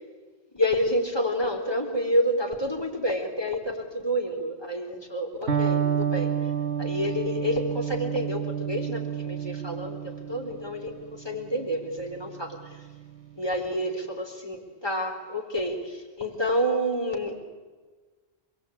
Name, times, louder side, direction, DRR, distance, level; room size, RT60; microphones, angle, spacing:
voice 1, 0.5-6.3 6.8-12.6 13.4-17.4, equal, 20° left, 2 dB, 4.1 m, -29 dB
Electric guitar, 5.5-13.3, right 8 dB, 70° right, 2.2 m, -30 dB
28.5 x 21.5 x 8.8 m, 1.4 s
omnidirectional pair, 1.1 m